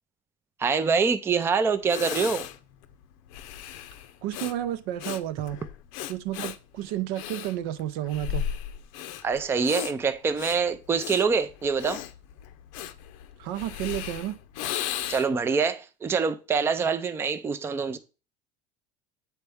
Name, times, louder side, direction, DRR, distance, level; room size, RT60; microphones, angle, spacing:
voice 1, 0.6-2.5 9.2-12.0 15.1-18.0, right 5 dB, 15° right, 0.4 m, -25 dB
Breathing, 1.4-1.5 1.8-15.5, left 11 dB, 80° left, 0.6 m, -36 dB
voice 2, 4.2-5.6 6.1-8.5 13.4-14.4, right 12 dB, 70° right, 0.6 m, -31 dB
8.1 x 4.4 x 3.5 m
cardioid pair, 145°, 17 cm